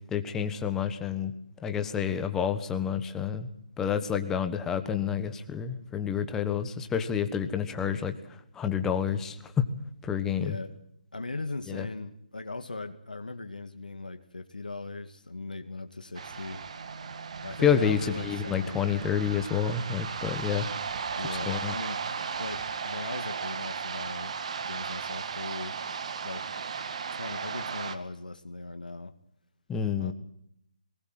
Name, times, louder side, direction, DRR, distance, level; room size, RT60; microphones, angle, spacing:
voice 1, 0.1-1.3 1.6-3.5 3.8-9.6 10.0-10.6 11.7-11.9 17.6-20.7 21.5-21.7 29.7-30.1, left 8 dB, 10° left, 9 dB, 1.4 m, -29 dB
voice 2, 10.4-10.7 11.1-16.6 17.4-19.0 21.1-22.0 22.4-24.3 24.6-25.8 26.2-26.5 27.1-29.1 30.0-30.1, left 2 dB, 85° left, 8 dB, 2.1 m, -39 dB
sound 1, 16.1-28.0, right 6 dB, 50° right, 1.8 m, -36 dB
21.5 x 19.5 x 7.7 m, 0.73 s
figure-of-eight pair, 150°, 4 cm